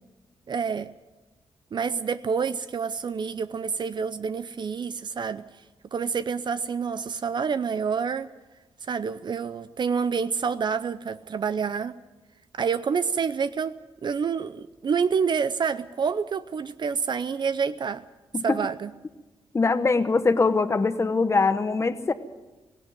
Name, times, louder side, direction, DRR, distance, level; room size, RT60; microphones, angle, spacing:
voice 1, 0.5-0.9 1.7-5.4 5.9-8.3 8.9-11.9 12.5-13.7 14.0-18.0 18.4-18.9, right 6 dB, 50° right, 13 dB, 0.6 m, -28 dB
voice 2, 19.5-22.1, left 4 dB, 30° left, 10 dB, 1.1 m, -22 dB
17.5 x 16.5 x 9.2 m, 1.1 s
cardioid pair, 95°, 10 cm